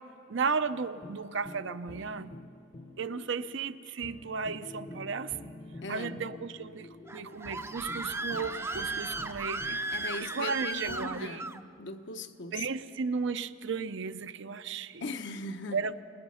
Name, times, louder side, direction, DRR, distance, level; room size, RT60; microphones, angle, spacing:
voice 1, 0.3-2.4 3.0-5.5 5.9-9.8 10.2-11.4 12.5-15.0 15.7-16.0, right 5 dB, 65° right, 0.6 m, -34 dB
sound 1, 1.0-11.1, left 1 dB, 35° left, 0.9 m, -50 dB
sound 2, 4.0-8.9, left 2 dB, 85° left, 1.7 m, -51 dB
voice 2, 5.8-6.3 9.9-12.7 15.0-15.8, left 2 dB, 65° left, 1.0 m, -39 dB
Screaming, 7.1-11.6, right 2 dB, 15° right, 0.6 m, -36 dB
27.0 x 20.5 x 5.7 m
head